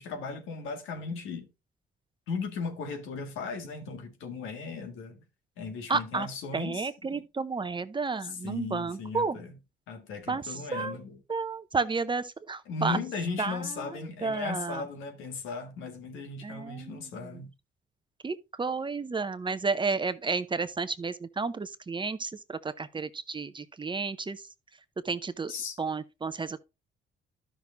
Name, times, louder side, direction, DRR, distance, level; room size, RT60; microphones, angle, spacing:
voice 1, 0.0-1.5 2.3-5.2 5.6-7.2 8.2-9.5 9.9-11.2 12.7-17.5 25.5-25.8, left 4 dB, 90° left, 1.9 m, -37 dB
voice 2, 5.9-6.3 6.5-9.4 10.3-11.0 11.3-13.0 13.4-14.8 16.4-17.4 18.2-24.4 25.0-25.5 25.8-26.6, right 4 dB, 25° right, 0.7 m, -32 dB
12.5 x 6.1 x 2.6 m
cardioid pair, 90°, 20 cm